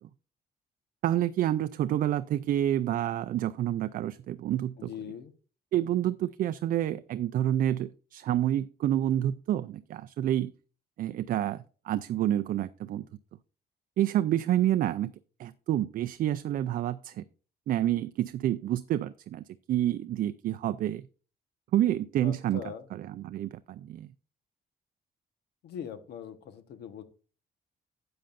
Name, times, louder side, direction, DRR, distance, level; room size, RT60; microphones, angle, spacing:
voice 1, 1.0-4.9 5.7-10.5 11.0-13.0 14.0-15.1 15.4-17.2 17.7-21.0 21.7-22.6 22.9-24.1, right 12 dB, 60° right, 0.4 m, -28 dB
voice 2, 4.8-5.3 22.2-22.9 25.6-27.0, left 8 dB, 85° left, 1.2 m, -41 dB
13.0 x 8.8 x 2.5 m
cardioid pair, 160°, 17 cm